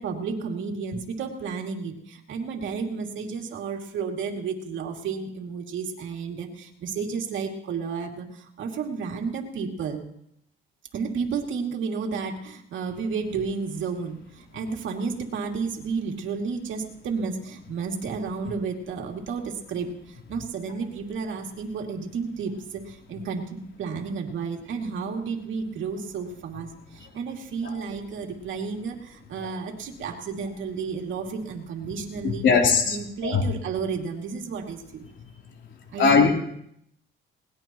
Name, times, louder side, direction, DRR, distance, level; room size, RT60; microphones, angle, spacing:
voice 1, 0.0-10.0 10.9-32.5 32.9-35.1 35.9-36.3, right 5 dB, 75° right, 2 dB, 2.7 m, -32 dB
voice 2, 32.2-33.4 36.0-36.3, left 5 dB, 70° left, 1 dB, 3.5 m, -20 dB
21.0 x 19.5 x 3.1 m, 0.73 s
cardioid pair, 90°, 20 cm